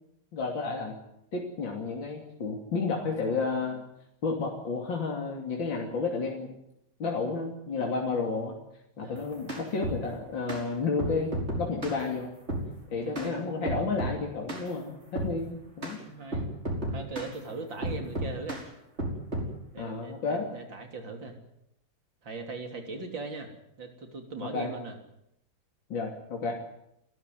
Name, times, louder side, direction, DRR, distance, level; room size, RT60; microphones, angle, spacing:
voice 1, 0.3-1.0 1.3-3.8 4.2-6.6 7.0-8.6 9.0-11.3 11.6-12.3 12.9-16.0 19.8-20.5 24.5-24.7 25.9-26.6, left 4 dB, 70° left, 0 dB, 3.6 m, -31 dB
voice 2, 9.0-9.3 13.1-13.9 16.0-16.5 16.9-18.6 19.7-21.4 22.2-23.5 23.8-25.0, right 3 dB, 70° right, 4 dB, 4.0 m, -39 dB
sound 1, 9.2-10.0 10.5-10.6 11.0-12.0 12.5-12.7 13.1-13.3 13.6-14.2 14.5-14.7 15.1-15.3 15.8-16.0 16.3-17.3 17.8-18.6 19.0-19.5, right 1 dB, 30° right, 5.6 m, -32 dB
30.0 x 12.5 x 9.6 m, 0.80 s
omnidirectional pair, 2.2 m